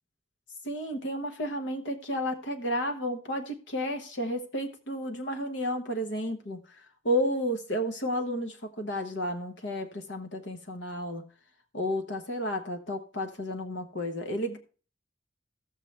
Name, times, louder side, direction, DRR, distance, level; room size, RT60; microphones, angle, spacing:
voice 1, 0.6-6.8 7.0-11.2 11.7-14.6, equal, 70° left, 4 dB, 1.1 m, -32 dB
15.5 x 6.5 x 3.3 m, 0.37 s
head